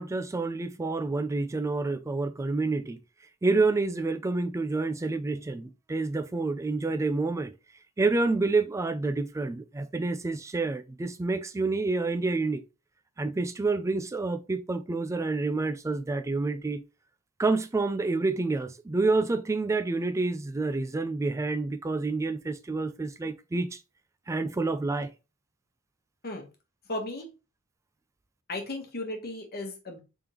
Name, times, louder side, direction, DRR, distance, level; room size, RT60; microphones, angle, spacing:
voice 1, 0.0-3.0 3.4-7.5 8.0-12.6 13.2-16.8 17.4-23.8 24.3-25.1, right 3 dB, 15° right, 0.3 m, -28 dB
voice 2, 26.9-27.3 28.5-30.0, left 2 dB, 45° left, 1.2 m, -35 dB
3.6 x 3.4 x 2.9 m
head